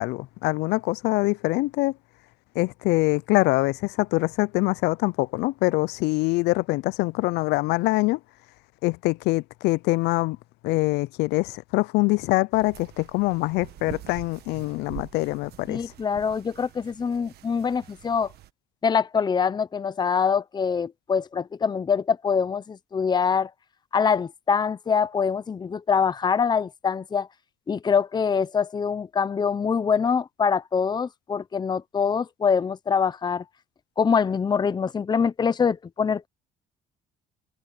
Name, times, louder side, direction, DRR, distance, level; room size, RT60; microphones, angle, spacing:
voice 1, 0.0-1.9 2.6-8.2 8.8-10.4 10.6-15.8, left 22 dB, 85° left, 0.4 m, -24 dB
sound 1, 12.5-18.5, right 14 dB, 70° right, 1.4 m, -45 dB
voice 2, 15.7-18.3 18.8-23.5 23.9-27.3 27.7-33.4 34.0-36.3, left 6 dB, 25° left, 0.8 m, -24 dB
cardioid pair, 110°, 17 cm